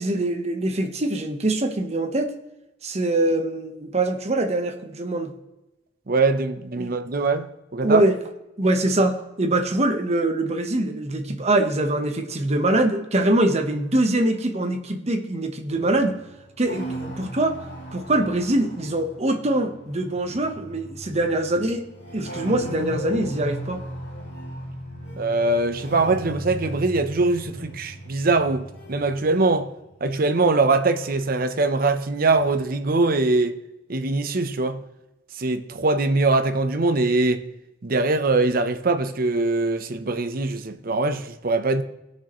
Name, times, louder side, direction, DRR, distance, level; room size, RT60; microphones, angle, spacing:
voice 1, 0.0-2.3 2.8-5.3 6.8-6.9 7.8-8.2 8.6-16.2 16.6-17.6 17.9-21.8 22.1-23.8, right 1 dB, 35° right, 1.0 m, -23 dB
voice 2, 6.1-8.0 25.2-29.7 30.0-33.6 33.9-34.8 35.4-37.5 37.8-41.8, right 3 dB, 50° right, 0.7 m, -22 dB
sound 1, 15.7-31.5 31.8-32.6, right 1 dB, 65° left, 2.6 m, -38 dB
18.0 x 6.4 x 3.0 m
head